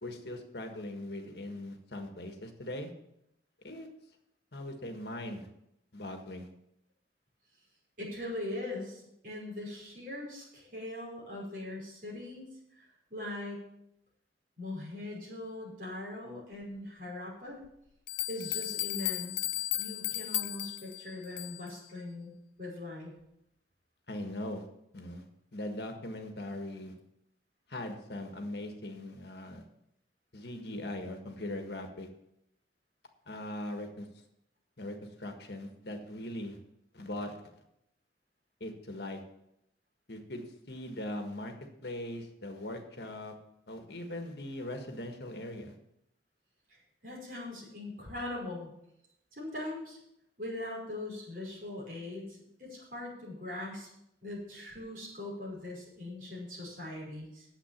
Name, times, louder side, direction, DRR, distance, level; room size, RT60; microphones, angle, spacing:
voice 1, 0.0-2.9 3.6-3.9 4.5-5.5 5.9-6.5 24.1-24.6 24.9-25.2 25.5-26.9 27.7-29.6 30.3-32.1 33.3-34.1 34.8-36.6 36.9-37.4 38.6-39.2 40.1-41.5 41.8-43.3 43.7-45.7, left 1 dB, 65° left, 4 dB, 1.6 m, -40 dB
voice 2, 8.0-12.5 12.8-13.6 14.6-17.6 18.3-19.5 19.8-22.3 22.6-23.1 47.0-48.7 49.3-50.0 50.4-53.9 54.2-57.5, left 1 dB, 50° right, -4 dB, 5.5 m, -41 dB
sound 1, 17.6-17.7 18.1-21.8, left 15 dB, 85° left, 0.5 m, -35 dB
9.9 x 8.0 x 7.3 m, 0.80 s
head